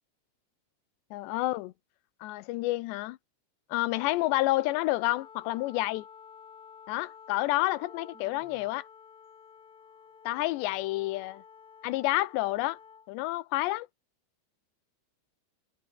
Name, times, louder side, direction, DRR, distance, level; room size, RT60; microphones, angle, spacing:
voice 1, 1.1-1.7 2.2-3.2 3.7-6.1 6.9-8.9 10.2-11.4 11.8-12.8 13.1-13.9, left 18 dB, 85° left, 3.0 m, -29 dB
Wind instrument woodwind instrument, 3.9-13.1, left 6 dB, 40° left, 2.6 m, -52 dB
sound 1, 7.5-8.7 9.2-9.3 9.6-10.9, right 4 dB, 35° right, 6.2 m, -61 dB
omnidirectional pair, 5.1 m